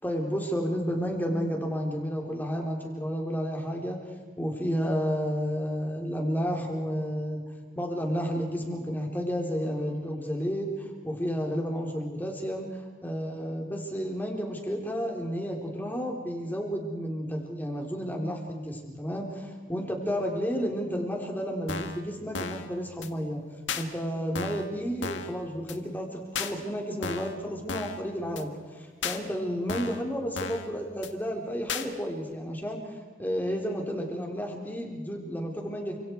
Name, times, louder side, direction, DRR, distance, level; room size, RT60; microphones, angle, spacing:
voice 1, 0.0-4.0 4.4-7.5 7.8-23.4 23.8-36.0, equal, 10° left, 1 dB, 3.9 m, -31 dB
sound 1, 21.7-22.0 22.3-22.7 23.0-23.1 23.7-23.8 24.4-24.7 25.0-25.3 25.7-25.8 26.4-26.5 27.0-27.4 27.7-28.0 28.4-28.5 29.0-29.2 29.7-30.0 30.4-30.7 31.0-31.1 31.7-31.9, left 5 dB, 85° left, 1.8 m, -34 dB
29.5 x 26.5 x 4.7 m, 1.5 s
head